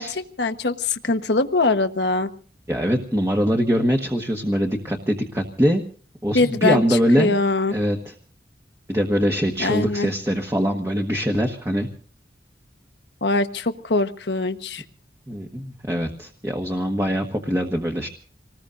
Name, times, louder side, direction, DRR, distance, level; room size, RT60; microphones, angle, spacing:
voice 1, 0.0-2.3 6.3-6.8 7.2-7.7 9.6-10.1 13.2-14.8, left 3 dB, 75° left, 8 dB, 1.2 m, -22 dB
voice 2, 2.7-5.8 6.2-7.4 7.7-8.1 8.9-11.9 15.3-18.1, equal, 15° right, 2 dB, 1.4 m, -23 dB
27.5 x 20.0 x 2.6 m, 0.43 s
head